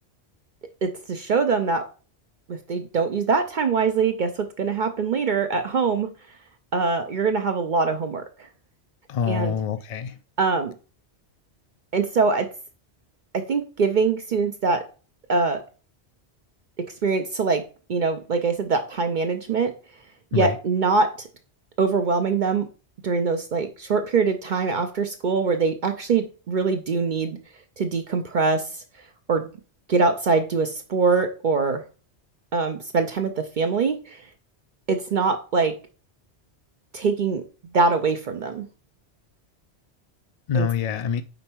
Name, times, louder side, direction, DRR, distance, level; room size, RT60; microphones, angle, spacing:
voice 1, 0.8-1.8 2.5-6.1 6.7-8.2 9.3-9.6 10.4-10.7 11.9-12.5 13.3-14.8 15.3-15.6 17.0-17.6 17.9-19.7 20.3-21.3 21.8-22.7 23.0-27.4 27.8-28.7 29.3-29.5 29.9-31.8 32.5-34.2 34.9-35.8 36.9-37.4 37.7-38.7 40.5-40.7, right 4 dB, 55° right, 0.6 m, -23 dB
voice 2, 9.1-10.2 20.3-20.6 40.5-41.2, left 7 dB, 55° left, 0.4 m, -25 dB
5.3 x 4.3 x 4.4 m
omnidirectional pair, 1.1 m